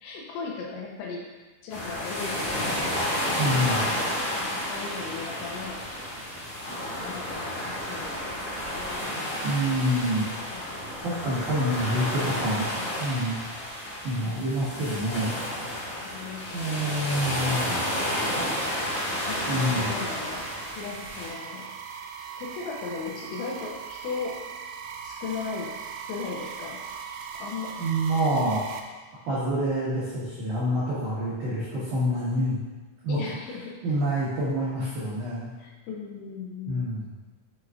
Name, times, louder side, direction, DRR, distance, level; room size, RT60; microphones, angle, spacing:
voice 1, 0.0-1.2 1.6-2.8 4.5-5.8 7.1-9.2 10.5-10.9 14.2-14.6 16.0-17.2 19.3-20.5 20.8-21.7 22.4-24.3 25.0-25.7 26.1-26.8 27.4-27.7 33.1-33.7 35.6-36.9, left 5 dB, 75° left, -2 dB, 3.1 m, -37 dB
sound 1, 1.7-21.3, left 1 dB, 50° left, 2.3 m, -31 dB
voice 2, 3.4-3.9 9.4-10.3 11.0-12.7 13.0-13.4 14.0-15.4 16.5-17.7 19.5-19.9 27.8-28.6 29.3-32.6 33.0-33.2 33.8-35.5 36.7-37.1, equal, 60° right, -11 dB, 2.2 m, -27 dB
sound 2, 15.8-28.8, right 6 dB, 90° right, 3.2 m, -41 dB
7.8 x 6.4 x 2.5 m, 1.3 s
omnidirectional pair, 5.8 m